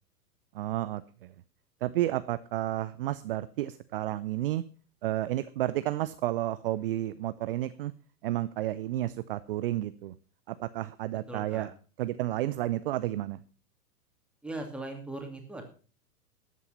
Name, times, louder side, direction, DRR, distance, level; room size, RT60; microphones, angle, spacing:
voice 1, 0.5-1.3 1.8-4.6 5.0-7.9 8.2-10.1 10.5-11.7 12.0-13.4, right 14 dB, 40° right, 15 dB, 0.5 m, -31 dB
voice 2, 11.3-11.7 14.4-15.6, right 2 dB, ahead, 3 dB, 2.5 m, -39 dB
13.0 x 8.3 x 5.8 m, 0.38 s
figure-of-eight pair, 105°, 46 cm